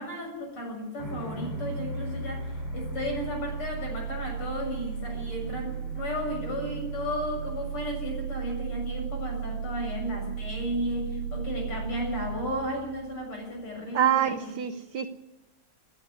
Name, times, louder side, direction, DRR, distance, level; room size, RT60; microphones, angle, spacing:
voice 1, 0.0-2.5 2.7-14.5, equal, 75° left, 1 dB, 7.9 m, -34 dB
sound 1, 1.0-13.7, right 5 dB, 30° left, 5.9 m, -35 dB
voice 2, 13.9-15.1, right 10 dB, 60° right, 8 dB, 1.3 m, -26 dB
29.0 x 9.8 x 9.5 m, 1.0 s
omnidirectional pair, 2.4 m